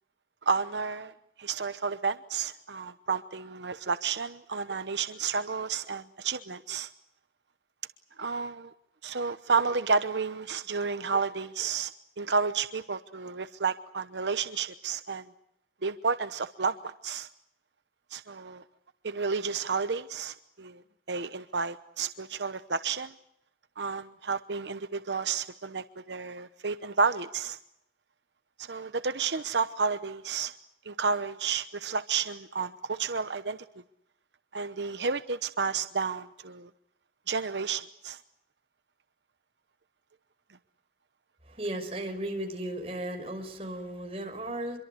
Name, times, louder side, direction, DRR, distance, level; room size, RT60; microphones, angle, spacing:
voice 1, 0.5-1.1 1.4-6.9 8.2-8.7 9.0-11.9 12.2-15.3 15.8-17.3 18.1-18.6 19.0-20.8 21.1-23.1 23.8-27.6 28.6-30.5 30.8-33.6 34.5-36.7 37.3-38.2, right 5 dB, 85° right, 11 dB, 1.0 m, -31 dB
voice 2, 41.5-44.8, right 1 dB, 35° right, 4 dB, 5.5 m, -35 dB
26.0 x 23.5 x 8.0 m, 0.77 s
head